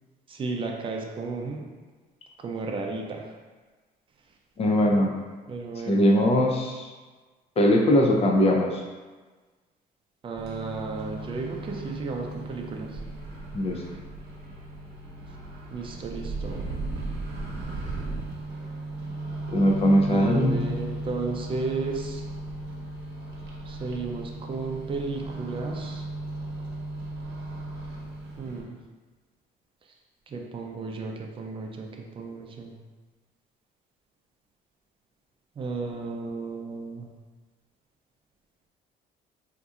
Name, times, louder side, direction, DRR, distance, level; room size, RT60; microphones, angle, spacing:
voice 1, 0.3-1.7 2.4-3.2 5.5-6.0 10.2-12.9 15.7-16.7 20.1-22.2 23.7-26.0 28.4-28.7 30.3-31.9 32.2-32.7 35.6-37.1, right 4 dB, 30° right, 1 dB, 0.5 m, -33 dB
voice 2, 4.6-5.1 5.9-6.9 7.6-8.8 13.5-13.8 19.5-20.6, equal, 35° left, 0 dB, 0.5 m, -21 dB
Microwave oven, 10.3-28.6, right 2 dB, 80° right, 0.8 m, -36 dB
4.0 x 2.6 x 2.4 m, 1.3 s
cardioid pair, 110°, 17 cm